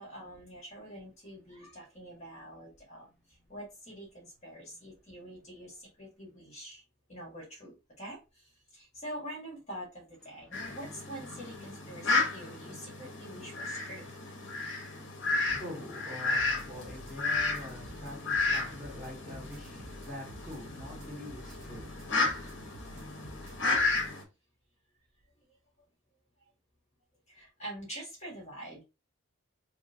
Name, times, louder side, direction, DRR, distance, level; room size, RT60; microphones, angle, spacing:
voice 1, 0.0-3.1 3.5-6.8 7.1-14.4 27.3-28.8, right 1 dB, 35° left, 1.6 m, -45 dB
voice 2, 10.3-10.8 15.2-22.9, left 1 dB, ahead, 2.0 m, -46 dB
Fowl, 10.5-24.2, left 3 dB, 60° left, 0.9 m, -33 dB
sound 1, 16.3-24.1, equal, 80° right, 0.8 m, -50 dB
3.2 x 2.9 x 2.6 m
head